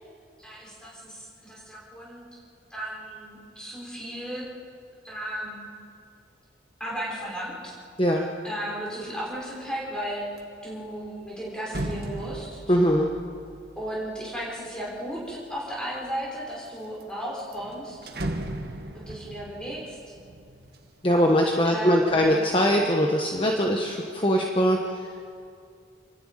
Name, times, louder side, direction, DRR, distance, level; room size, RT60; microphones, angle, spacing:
voice 1, 0.4-2.3 2.7-4.5 5.0-5.6 6.8-7.7 8.4-12.6 13.8-18.0 18.9-20.1 21.6-22.3, equal, 5° left, -5 dB, 5.3 m, -35 dB
sound 1, 9.3-9.6 10.0-15.4 16.0-16.7 17.0-17.1 17.4-21.3 21.7-22.3, right 1 dB, 55° right, 1.6 m, -38 dB
voice 2, 12.7-13.1 21.0-24.8, equal, 30° left, 0 dB, 1.3 m, -21 dB
28.5 x 11.5 x 9.0 m, 2.3 s
head